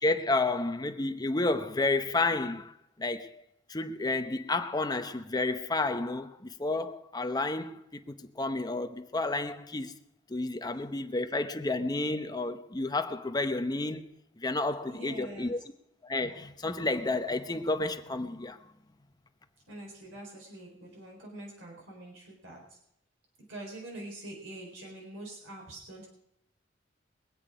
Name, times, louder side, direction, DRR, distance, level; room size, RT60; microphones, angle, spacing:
voice 1, 0.0-3.4 3.7-10.0 10.3-14.0 14.4-15.6 16.0-18.6, left 2 dB, 20° left, 0.9 m, -31 dB
voice 2, 14.9-15.5 19.7-22.8 23.5-26.1, right 1 dB, 85° right, 4.2 m, -45 dB
22.5 x 8.9 x 5.0 m
head